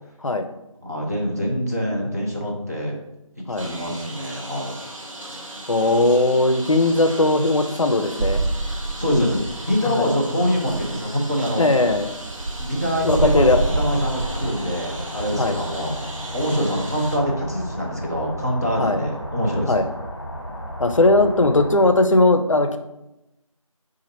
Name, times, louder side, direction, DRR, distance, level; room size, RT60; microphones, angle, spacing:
voice 1, 0.8-3.0 3.5-4.8 9.0-11.7 12.6-13.5 13.8-16.0 16.3-19.9, equal, 30° right, -3 dB, 0.7 m, -24 dB
Engine, 3.6-17.2, right 1 dB, 65° right, 1.0 m, -37 dB
voice 2, 5.7-8.4 9.1-9.3 9.8-10.1 11.6-12.1 13.0-13.6 15.4-15.6 18.8-19.0 19.7-19.8 20.8-22.8, left 2 dB, 65° left, 8 dB, 0.5 m, -18 dB
sound 1, 8.2-9.8 10.1-10.2 10.5-11.0 11.5-14.5, right 2 dB, 85° right, 0.5 m, -26 dB
sound 2, 13.2-21.9, equal, 45° left, 0.9 m, -34 dB
4.0 x 2.5 x 4.2 m, 0.90 s
figure-of-eight pair, 175°, 18 cm